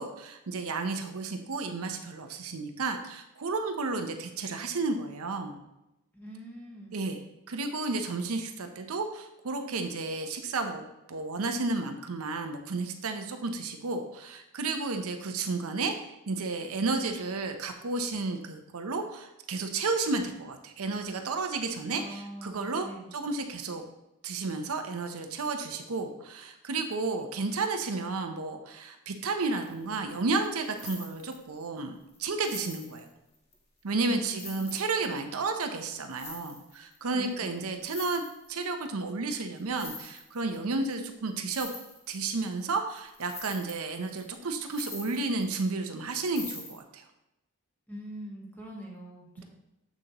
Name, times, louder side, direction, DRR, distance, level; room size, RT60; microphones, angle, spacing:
voice 1, 0.0-5.6 6.9-7.2 7.5-23.8 24.2-33.1 33.8-38.2 38.5-41.7 42.1-47.0 49.4-49.5, right 3 dB, 75° right, 6 dB, 0.7 m, -32 dB
voice 2, 6.1-7.0 21.9-23.1 34.1-34.6 37.1-37.7 47.9-49.4, equal, 10° left, -3 dB, 1.5 m, -43 dB
sound 1, 29.6-29.8 30.1-31.6 32.1-32.2 32.4-33.5 34.0-34.1 34.4-35.4 36.0-37.0 37.3-37.4 37.6-38.6 39.6-40.6 40.8-40.9 41.3-42.6 42.9-45.7 46.1-46.8, left 3 dB, 25° left, 1.2 m, -44 dB
7.4 x 6.4 x 2.9 m, 0.92 s
head